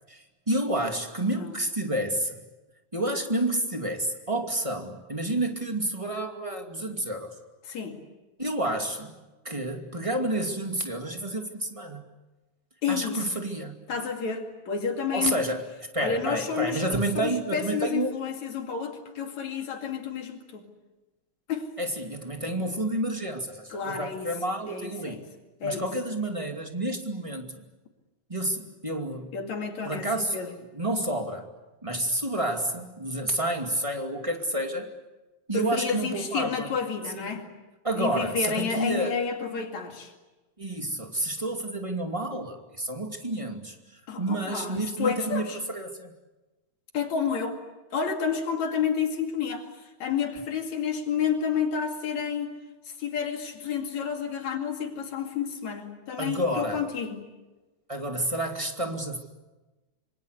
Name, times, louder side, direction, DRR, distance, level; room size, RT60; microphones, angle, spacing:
voice 1, 0.1-2.4 2.9-7.3 8.4-9.2 9.4-12.0 12.9-13.7 15.1-15.7 15.9-18.1 21.8-25.2 25.6-27.6 28.3-29.3 29.8-30.4 30.7-31.5 31.8-34.9 35.5-36.7 37.2-37.4 37.8-39.1 40.6-46.1 56.2-56.8 57.9-59.2, right 1 dB, 10° right, 4 dB, 2.2 m, -30 dB
voice 2, 7.7-8.0 12.8-13.4 13.9-15.4 16.0-20.7 21.5-21.7 23.7-24.3 24.6-25.3 25.6-25.9 29.3-30.6 35.5-37.5 38.0-40.1 44.1-45.6 46.9-47.6 47.9-52.6 52.9-57.3, left 6 dB, 70° left, 4 dB, 3.7 m, -30 dB
26.5 x 25.0 x 8.2 m, 1.1 s
omnidirectional pair, 3.3 m